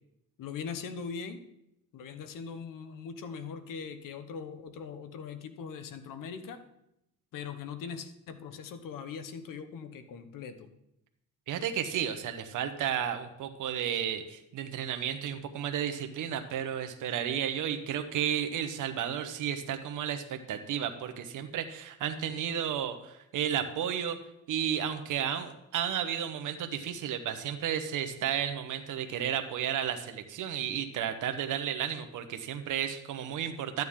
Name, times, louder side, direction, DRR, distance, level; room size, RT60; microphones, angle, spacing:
voice 1, 0.4-1.4 1.9-6.6 7.3-10.7, left 6 dB, 80° left, 9 dB, 1.2 m, -41 dB
voice 2, 11.5-24.2 24.5-33.8, right 9 dB, 70° right, 7 dB, 1.1 m, -33 dB
12.5 x 9.3 x 3.7 m, 0.82 s
cardioid pair, 95°, 32 cm